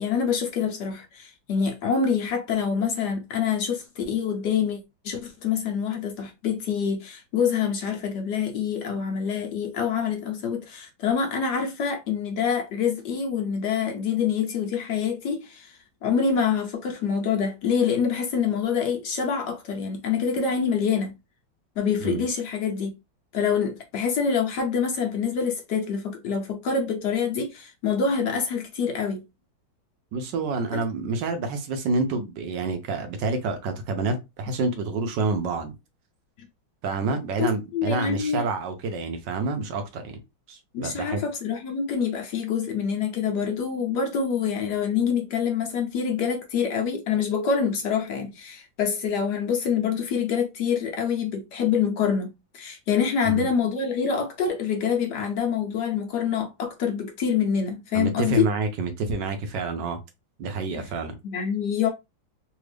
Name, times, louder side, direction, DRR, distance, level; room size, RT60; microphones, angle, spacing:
voice 1, 0.0-21.1 21.8-22.9 23.3-29.2 30.7-30.8 36.4-36.5 37.4-38.5 40.7-58.5 60.7-60.9 61.2-61.9, left 6 dB, 70° left, 1.1 m, -26 dB
voice 2, 30.1-35.7 36.8-40.2 40.5-41.2 53.2-53.5 57.9-60.0 60.4-61.2, right 3 dB, 70° right, 1.2 m, -28 dB
3.4 x 2.4 x 3.3 m
omnidirectional pair, 2.2 m